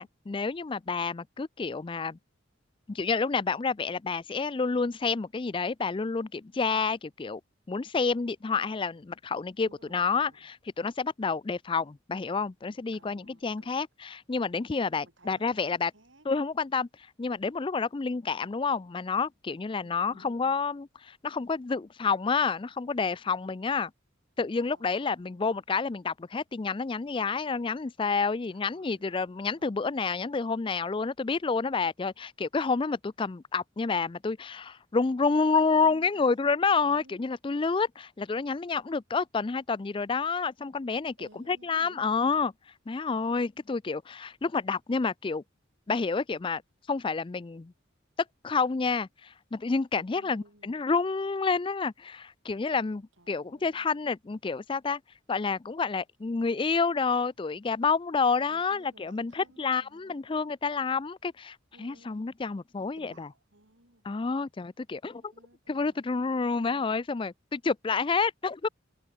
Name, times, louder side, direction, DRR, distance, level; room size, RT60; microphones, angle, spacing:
voice 1, 0.0-2.2 2.9-7.4 7.7-15.9 16.2-16.9 17.2-23.9 24.4-42.5 42.9-45.4 45.9-46.6 46.9-47.7 48.4-55.0 55.3-63.3 64.0-65.3 65.7-68.7, left 4 dB, 25° left, 0.4 m, -29 dB
voice 2, 9.6-10.4 12.9-13.8 15.0-16.3 19.8-20.5 24.7-25.6 28.5-29.2 29.5-29.9 35.7-37.3 41.2-42.4 50.1-50.7 53.2-53.9 58.5-60.2 61.7-62.2 62.8-64.1 65.3-66.0 66.7-66.8, right 1 dB, 70° right, 8.0 m, -58 dB
head